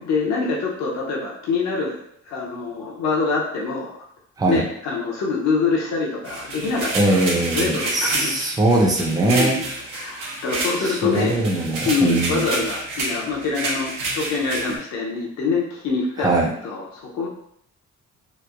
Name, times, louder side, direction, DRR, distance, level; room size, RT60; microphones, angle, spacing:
voice 1, 0.0-2.0 2.3-3.9 4.5-8.4 9.2-9.6 9.9-11.4 11.8-16.3 16.6-17.3, left 4 dB, 65° left, -3 dB, 0.6 m, -25 dB
sound 1, 6.2-14.8, right 2 dB, 90° right, 0.8 m, -29 dB
voice 2, 6.9-9.6 10.8-12.5 16.2-16.5, right 2 dB, 10° right, 0 dB, 0.4 m, -21 dB
3.0 x 2.1 x 2.3 m, 0.71 s
cardioid pair, 95°, 30 cm